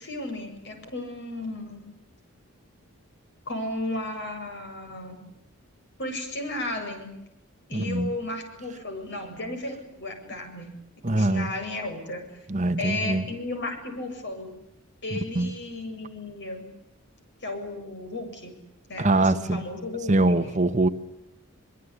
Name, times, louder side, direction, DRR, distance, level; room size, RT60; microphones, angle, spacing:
voice 1, 0.0-1.9 3.5-5.2 6.0-7.2 7.7-10.7 11.1-12.4 12.8-14.5 15.0-16.7 17.4-18.6 18.9-20.4, left 2 dB, 55° left, 5 dB, 7.7 m, -34 dB
voice 2, 7.7-8.1 11.0-11.5 12.5-13.2 15.1-15.5 19.0-19.6 20.1-20.9, right 2 dB, 35° right, 10 dB, 1.2 m, -23 dB
24.5 x 23.0 x 10.0 m, 0.88 s
head